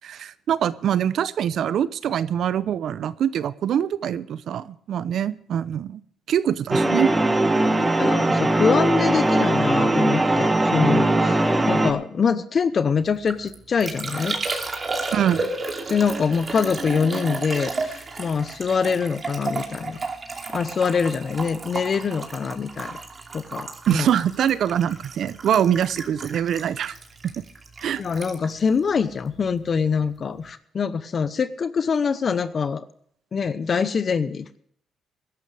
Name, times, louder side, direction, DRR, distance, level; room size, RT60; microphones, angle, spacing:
voice 1, 0.0-6.0 6.3-7.1 15.1-15.4 23.9-26.9 27.4-27.5 27.8-28.0, right 9 dB, 70° right, 17 dB, 0.7 m, -24 dB
sound 1, 6.7-11.9, right 2 dB, 15° right, 1.7 m, -20 dB
voice 2, 8.0-14.4 15.9-20.0 20.5-23.0 23.3-24.1 28.0-32.8 33.3-34.6, left 6 dB, 45° left, 13 dB, 0.8 m, -24 dB
Liquid, 13.1-29.7 29.9-30.5, right 3 dB, 35° right, 2.7 m, -33 dB
21.5 x 12.0 x 3.4 m, 0.63 s
cardioid pair, 90°, 0 cm